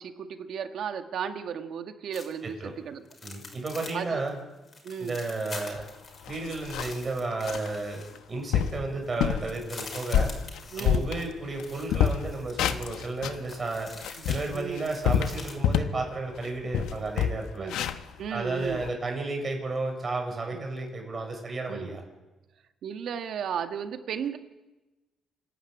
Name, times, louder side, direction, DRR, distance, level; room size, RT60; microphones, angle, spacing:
voice 1, 0.0-3.0 3.9-4.2 4.8-5.2 8.9-9.0 10.1-10.3 10.7-11.1 14.2-14.3 14.5-14.9 17.6-17.8 18.2-18.8 20.5-20.7 21.7-21.9 22.8-24.4, right 7 dB, 70° right, 6 dB, 1.9 m, -35 dB
sound 1, 2.1-2.5 3.1-4.0 4.3-4.4 4.6-8.4 8.7-8.8 9.0-15.5, left 3 dB, 40° left, 6.1 m, -45 dB
voice 2, 3.2-4.4 5.0-5.9 6.3-8.0 8.3-10.3 10.8-13.9 14.3-17.7 18.3-22.0, right 3 dB, 35° right, 2 dB, 7.3 m, -33 dB
sound 2, 5.8-5.9 6.3-7.0 7.5-7.7 8.2-8.3 8.5-8.8 9.2-9.5 9.9-11.6 11.9-13.4 13.9-16.0 16.4-16.5 16.7-18.9, left 9 dB, 90° left, 1.2 m, -27 dB
27.0 x 12.0 x 8.8 m, 1.1 s
cardioid pair, 90°, 0 cm